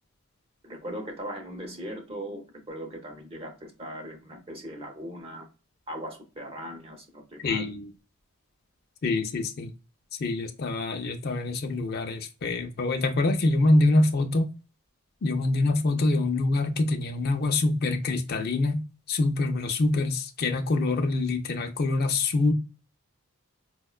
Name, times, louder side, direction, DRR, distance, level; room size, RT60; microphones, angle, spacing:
voice 1, 0.6-5.5 5.9-7.7, equal, 25° right, 0.7 m, -39 dB
voice 2, 7.4-7.9 9.0-9.7 10.2-14.5 15.2-18.8 19.1-22.5, left 2 dB, 45° left, 0.4 m, -25 dB
4.6 x 2.1 x 2.3 m
head